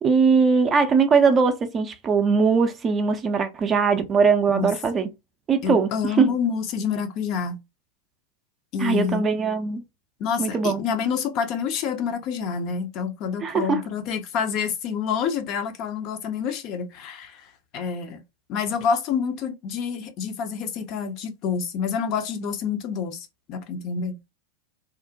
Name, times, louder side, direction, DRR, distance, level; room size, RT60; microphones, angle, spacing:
voice 1, 0.0-5.1 5.5-6.3 8.8-9.8 10.4-10.8 13.4-13.8, right 5 dB, 25° right, 0.4 m, -20 dB
voice 2, 5.6-7.6 8.7-9.3 10.2-17.5 17.7-18.2 18.5-24.2, left 6 dB, 40° left, 0.4 m, -28 dB
2.5 x 2.0 x 2.5 m
figure-of-eight pair, 90°, 0 cm